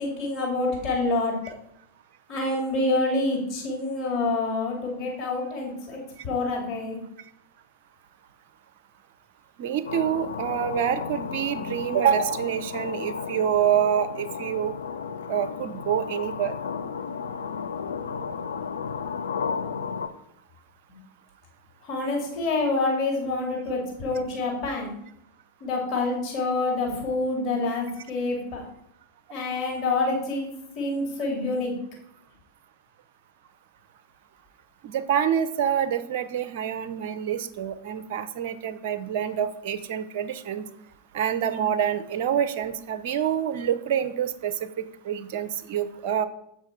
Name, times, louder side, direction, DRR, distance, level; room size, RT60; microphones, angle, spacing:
voice 1, 0.0-1.3 2.3-6.0 6.2-7.0 21.8-25.0 25.6-28.6 29.3-30.5 30.8-31.7, left 3 dB, 35° left, -1 dB, 2.3 m, -27 dB
voice 2, 9.6-14.7 15.3-16.5 34.8-40.6 41.1-44.5 45.0-46.3, right 9 dB, 50° right, 12 dB, 0.6 m, -26 dB
sound 1, 9.9-20.1, left 6 dB, 65° left, 0.5 m, -33 dB
7.6 x 5.5 x 4.7 m, 0.76 s
figure-of-eight pair, 90°, 0 cm